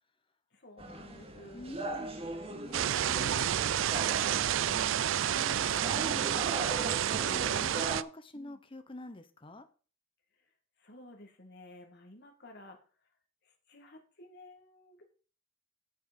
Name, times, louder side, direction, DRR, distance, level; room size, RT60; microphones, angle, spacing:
voice 1, 0.5-5.2 8.3-8.6 10.8-12.8 13.4-15.0, left 1 dB, 50° left, 4 dB, 2.2 m, -53 dB
sound 1, 0.8-8.0, right 2 dB, 30° right, 1.5 m, -40 dB
voice 2, 1.5-2.1 3.0-3.5 5.3-6.4 6.8-9.7, left 2 dB, 25° left, 10 dB, 0.9 m, -46 dB
sound 2, 2.7-8.0, right 10 dB, 65° right, 0.4 m, -30 dB
8.7 x 7.3 x 5.4 m, 0.38 s
head